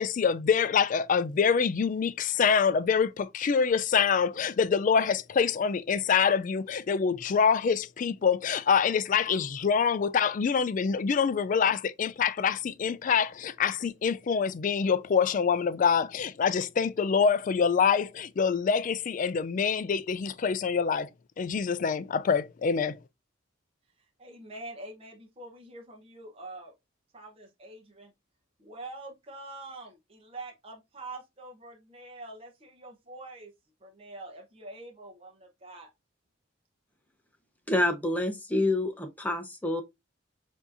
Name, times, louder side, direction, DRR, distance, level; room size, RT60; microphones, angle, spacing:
voice 1, 0.0-21.1 21.4-23.0, left 6 dB, 40° left, 0.3 m, -25 dB
voice 2, 24.0-26.7 27.1-28.1 28.6-33.5 33.8-35.9, right 2 dB, 30° right, 0.8 m, -45 dB
voice 3, 37.7-39.8, left 1 dB, 10° left, 0.6 m, -27 dB
7.0 x 2.7 x 2.5 m
head